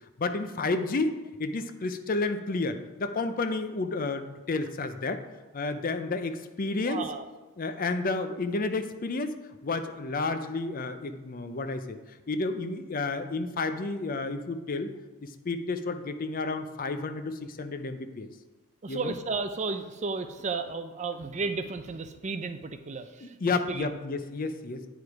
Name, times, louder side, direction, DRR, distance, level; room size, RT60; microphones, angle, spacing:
voice 1, 0.2-5.3 5.5-7.0 7.6-9.4 9.6-12.0 12.3-14.9 15.2-18.3 18.9-19.2 23.2-24.8, left 3 dB, 40° left, 9 dB, 0.5 m, -31 dB
voice 2, 6.9-7.3 18.8-23.9, right 4 dB, 30° right, 9 dB, 0.5 m, -33 dB
9.0 x 4.9 x 4.7 m, 1.2 s
head